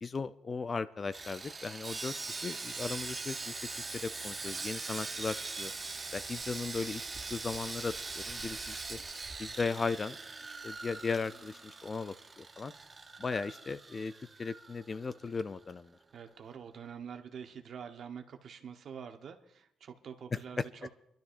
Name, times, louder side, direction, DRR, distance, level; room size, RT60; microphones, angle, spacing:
voice 1, 0.0-3.6 3.9-5.7 6.1-7.0 7.3-9.0 9.4-10.2 10.5-12.7 13.2-14.1 14.4-16.0, left 4 dB, 35° left, 14 dB, 0.4 m, -37 dB
Sawing, 1.1-15.4 15.6-15.8 16.3-16.4, right 3 dB, 25° right, 0.9 m, -42 dB
voice 2, 16.1-20.9, right 7 dB, 60° right, 6 dB, 1.1 m, -46 dB
26.5 x 12.0 x 2.6 m, 0.81 s
cardioid pair, 90°, 0 cm